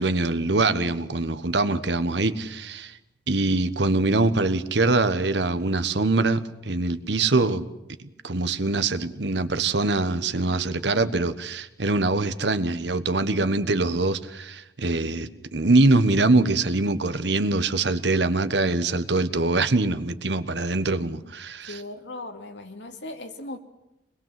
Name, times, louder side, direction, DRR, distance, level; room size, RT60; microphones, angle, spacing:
voice 1, 0.0-3.0 3.3-7.7 8.0-21.8, right 2 dB, 70° right, 13 dB, 1.3 m, -23 dB
voice 2, 21.7-23.6, left 2 dB, 80° left, 5 dB, 2.4 m, -38 dB
24.0 x 21.0 x 7.7 m, 0.90 s
head